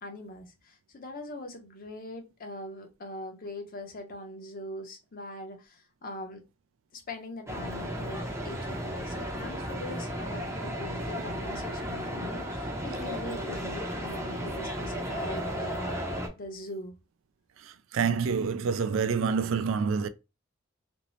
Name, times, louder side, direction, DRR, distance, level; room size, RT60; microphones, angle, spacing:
voice 1, 0.0-6.4 6.9-16.0 16.4-16.9, left 1 dB, 45° left, 0.6 m, -41 dB
sound 1, 7.5-16.3, equal, 15° right, 0.6 m, -34 dB
voice 2, 17.6-20.1, right 5 dB, 70° right, 0.3 m, -27 dB
2.6 x 2.0 x 3.0 m
head